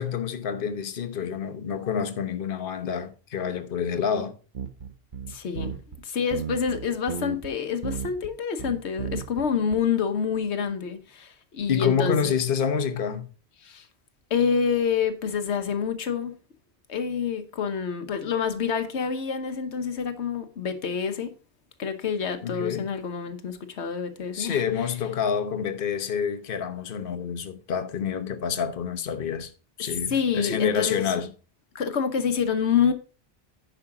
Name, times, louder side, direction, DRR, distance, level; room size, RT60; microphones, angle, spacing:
voice 1, 0.0-4.3 11.7-13.3 22.4-22.9 24.3-29.5 29.8-31.3, left 7 dB, 55° left, 1.1 m, -28 dB
sound 1, 4.5-6.0 6.3-7.5 7.8-8.3 8.6-9.5 9.7-9.8, right 6 dB, 50° right, 1.1 m, -34 dB
voice 2, 5.3-5.8 6.0-12.4 13.6-13.9 14.3-16.4 16.9-21.3 21.8-24.6 30.1-31.1 31.7-32.9, left 6 dB, 85° left, 1.3 m, -27 dB
9.8 x 5.6 x 4.8 m
omnidirectional pair, 1.1 m